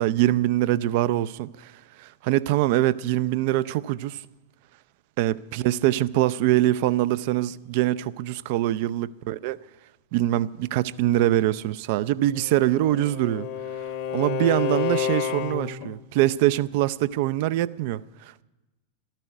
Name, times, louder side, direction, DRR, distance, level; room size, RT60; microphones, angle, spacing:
voice 1, 0.0-1.7 2.0-4.2 5.2-9.6 10.1-13.5 14.1-18.4, right 14 dB, 50° right, 0.4 m, -24 dB
Bowed string instrument, 12.3-15.9, left 8 dB, 45° left, 0.9 m, -30 dB
13.0 x 13.0 x 8.0 m
figure-of-eight pair, 90°, 0 cm